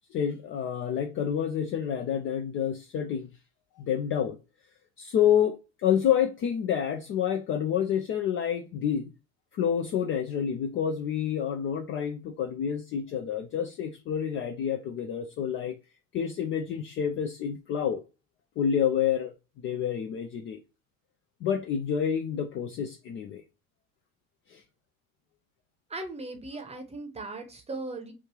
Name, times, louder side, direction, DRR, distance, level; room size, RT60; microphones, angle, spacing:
voice 1, 0.1-3.3 3.8-4.4 5.0-9.1 9.5-15.7 16.1-18.0 18.6-19.3 19.6-20.6 21.4-23.4 24.5-24.6, left 8 dB, 30° left, 0.4 m, -28 dB
voice 2, 25.9-28.1, right 2 dB, 15° right, 0.8 m, -38 dB
3.1 x 2.4 x 3.0 m
figure-of-eight pair, 70°, 43 cm